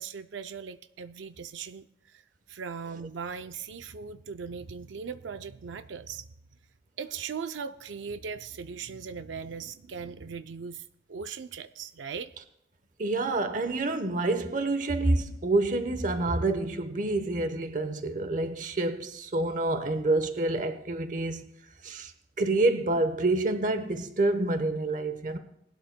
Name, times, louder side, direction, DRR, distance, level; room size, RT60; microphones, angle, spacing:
voice 1, 0.0-6.3 7.0-12.3, right 6 dB, 85° right, 0.5 m, -39 dB
voice 2, 13.0-21.4 21.8-22.1 22.4-25.4, right 2 dB, 45° right, 0.9 m, -27 dB
19.5 x 12.0 x 2.2 m
head